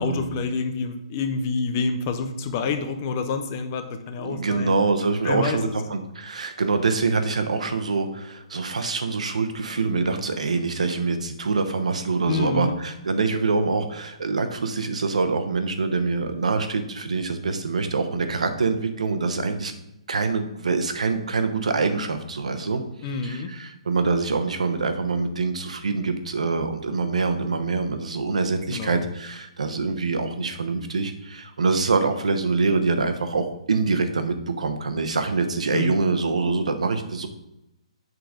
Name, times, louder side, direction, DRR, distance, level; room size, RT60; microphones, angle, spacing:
voice 1, 0.0-4.7 5.2-5.8 12.3-12.7 23.0-23.5 28.7-29.1 35.7-36.0, left 4 dB, 20° left, 7 dB, 0.5 m, -28 dB
voice 2, 4.2-19.7 20.1-22.8 23.2-37.3, right 4 dB, 85° right, 8 dB, 1.0 m, -25 dB
7.7 x 3.9 x 5.0 m, 0.88 s
hypercardioid pair, 175°, 4 cm